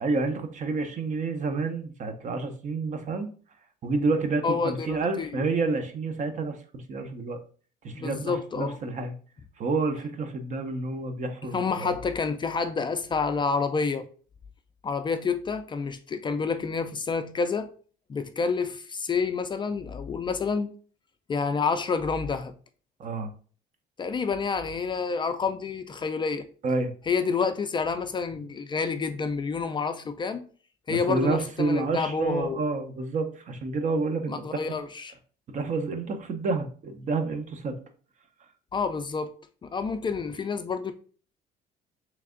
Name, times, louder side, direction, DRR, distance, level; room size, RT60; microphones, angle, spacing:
voice 1, 0.0-3.3 3.8-7.4 7.8-9.1 9.6-12.0 23.0-23.3 26.6-26.9 30.9-34.8 35.5-37.8, right 3 dB, 45° right, 0.7 m, -29 dB
voice 2, 4.4-5.5 7.9-8.8 11.5-14.1 14.8-17.7 18.1-20.7 21.3-22.5 24.0-26.5 27.1-30.4 30.9-32.6 34.3-35.1 38.7-39.3 39.6-40.9, left 5 dB, 30° left, 0.3 m, -28 dB
3.4 x 3.2 x 3.7 m
cardioid pair, 110°, 17 cm